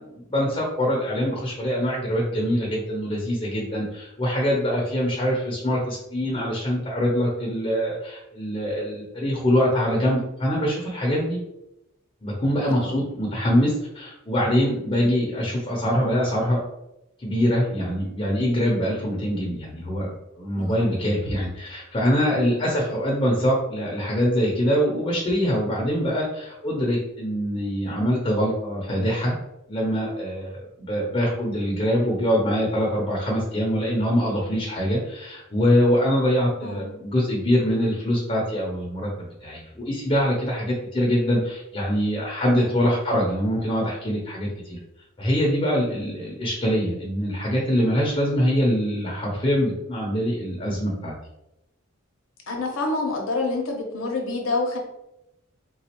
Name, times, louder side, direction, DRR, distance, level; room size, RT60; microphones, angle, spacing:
voice 1, 0.1-11.4 12.2-16.6 17.2-29.3 29.7-44.8 45.2-51.1, equal, 25° left, -3 dB, 0.7 m, -24 dB
voice 2, 36.6-36.9 42.6-42.9 52.5-54.8, left 3 dB, 85° left, 0 dB, 0.7 m, -28 dB
4.0 x 2.3 x 2.9 m, 0.87 s
head